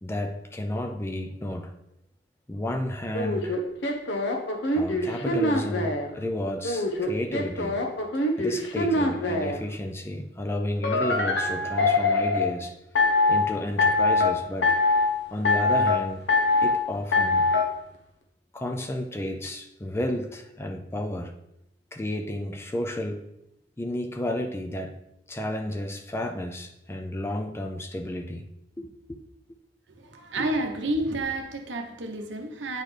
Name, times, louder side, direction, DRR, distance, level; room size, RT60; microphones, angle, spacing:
voice 1, 0.0-1.7 2.5-3.6 4.7-7.8 8.4-12.8 13.3-14.8 15.3-16.3 16.6-17.4 18.5-21.3 21.9-23.2 23.8-25.0 25.3-28.5 28.8-29.2 31.0-31.1, left 1 dB, 15° left, 6 dB, 0.4 m, -32 dB
sound 1, 3.1-6.1 6.6-9.6 10.8-12.5 13.0-13.4 13.8-14.3 14.6-15.1 15.4-16.0 16.3-16.8 17.1-17.6, left 2 dB, 75° left, 0.8 m, -23 dB
voice 2, 30.0-32.8, right 1 dB, 80° right, 5 dB, 0.8 m, -30 dB
8.7 x 4.1 x 3.2 m, 0.84 s
head